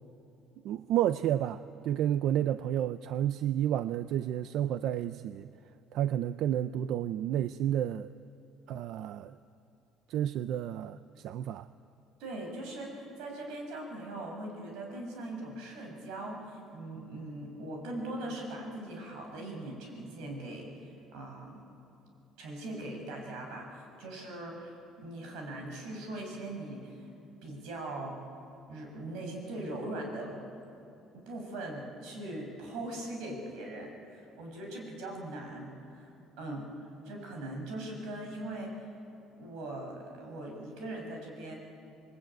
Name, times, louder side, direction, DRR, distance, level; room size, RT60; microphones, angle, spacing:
voice 1, 0.6-5.5 5.9-8.1 8.7-9.4 10.1-11.7, right 11 dB, 60° right, 13 dB, 0.5 m, -31 dB
voice 2, 12.2-21.6 22.4-27.1 27.4-28.2 28.7-30.4 31.1-38.7 39.4-41.5, right 1 dB, 80° right, 1 dB, 6.9 m, -40 dB
29.0 x 21.5 x 9.1 m, 2.8 s
cardioid pair, 170°, 0 cm